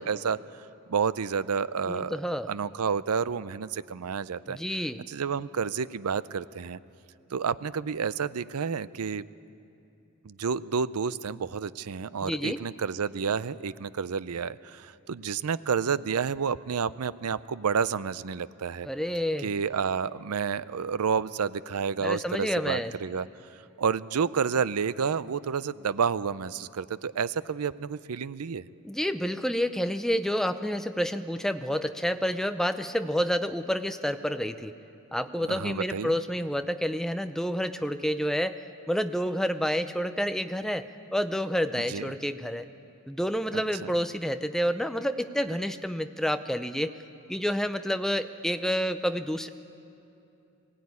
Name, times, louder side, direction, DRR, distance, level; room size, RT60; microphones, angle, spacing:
voice 1, 0.1-2.2 2.5-4.6 5.1-6.8 7.3-9.2 10.2-18.9 19.4-23.3 23.8-28.6 35.5-36.2 41.9-42.1 43.5-43.9, right 6 dB, 90° right, 17 dB, 0.5 m, -30 dB
voice 2, 1.9-2.5 4.5-5.0 12.2-12.6 18.8-19.5 22.0-22.9 28.8-34.8 35.1-38.6 38.9-42.6 43.1-46.9 47.3-49.5, equal, ahead, 9 dB, 0.5 m, -29 dB
20.5 x 16.5 x 9.6 m, 2.8 s
head